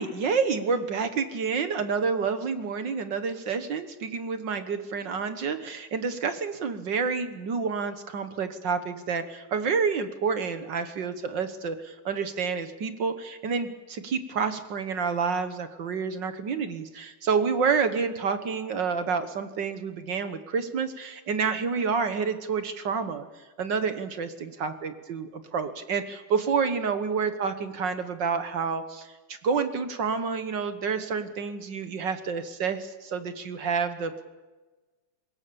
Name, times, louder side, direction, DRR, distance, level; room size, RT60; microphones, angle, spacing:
voice 1, 0.0-23.3 23.6-34.2, right 5 dB, 55° right, 10 dB, 1.3 m, -29 dB
25.0 x 21.5 x 7.0 m, 1.2 s
omnidirectional pair, 3.6 m